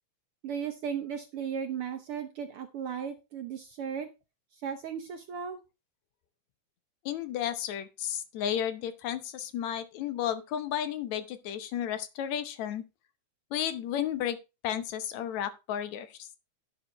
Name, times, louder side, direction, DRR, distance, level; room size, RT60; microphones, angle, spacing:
voice 1, 0.4-4.1 4.5-5.6, right 7 dB, 70° right, 1.4 m, -36 dB
voice 2, 7.1-12.8 13.5-14.4 14.6-16.3, left 10 dB, 75° left, 2.2 m, -33 dB
11.5 x 9.0 x 3.1 m
omnidirectional pair, 3.4 m